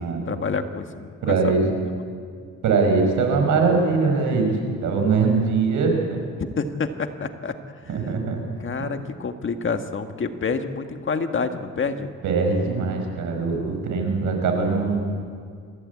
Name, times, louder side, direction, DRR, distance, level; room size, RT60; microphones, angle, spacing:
voice 1, 0.0-1.5 6.5-7.5 8.6-12.1, left 5 dB, 40° left, 7 dB, 1.7 m, -28 dB
voice 2, 1.2-1.6 2.6-6.2 7.9-8.4 12.2-15.0, right 4 dB, 80° right, 3 dB, 5.5 m, -22 dB
27.5 x 14.5 x 8.5 m, 2.1 s
cardioid pair, 90°, 30 cm